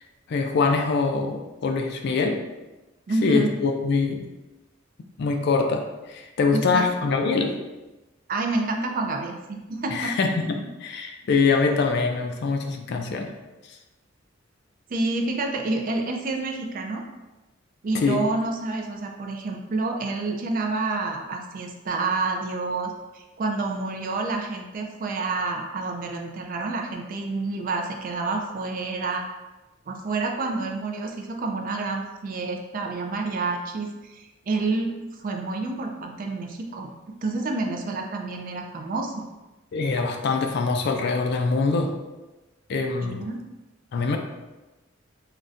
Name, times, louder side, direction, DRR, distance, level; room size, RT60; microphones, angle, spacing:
voice 1, 0.3-2.4 3.2-4.3 5.2-7.6 9.9-13.3 18.0-18.2 39.7-42.0 42.7-43.3 43.9-44.2, left 4 dB, 55° left, 4 dB, 0.3 m, -24 dB
voice 2, 3.1-3.5 6.5-7.1 8.3-10.1 14.9-17.1 17.8-29.3 29.9-34.9 35.2-36.9 37.2-39.2 43.0-43.4, right 3 dB, 45° right, 3 dB, 0.4 m, -28 dB
3.8 x 2.2 x 2.5 m, 1.1 s
head